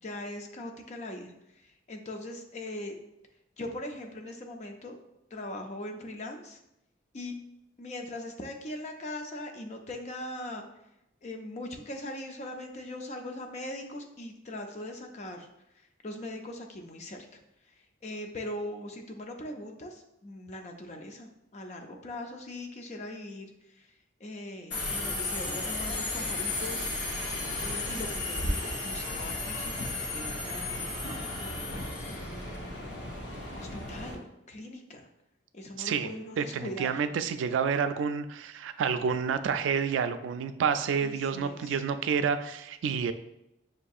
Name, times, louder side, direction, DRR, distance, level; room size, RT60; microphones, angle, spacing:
voice 1, 0.0-3.0 3.6-5.0 5.3-6.6 7.1-7.3 7.8-10.6 11.2-15.5 15.7-17.3 17.7-23.9 24.2-26.9 27.6-30.8 31.4-31.8 32.6-33.3 33.6-35.0 35.5-37.0 41.0-41.8, left 1 dB, 35° left, 4 dB, 0.4 m, -41 dB
Subway metro underground, 24.7-34.2, left 2 dB, 70° left, 0.9 m, -34 dB
voice 2, 35.8-36.1 36.4-43.1, right 6 dB, 90° right, 10 dB, 0.3 m, -29 dB
6.2 x 2.6 x 2.4 m, 0.86 s
head